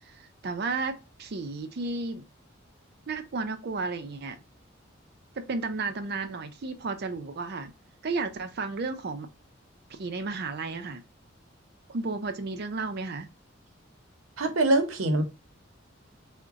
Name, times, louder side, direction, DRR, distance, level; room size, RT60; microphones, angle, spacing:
voice 1, 0.1-2.2 3.1-4.4 5.4-7.7 8.0-9.3 9.9-11.0 11.9-13.3, right 3 dB, 50° right, 0.5 m, -33 dB
voice 2, 14.4-15.2, right 2 dB, 85° right, 0.8 m, -23 dB
3.9 x 2.1 x 3.4 m
head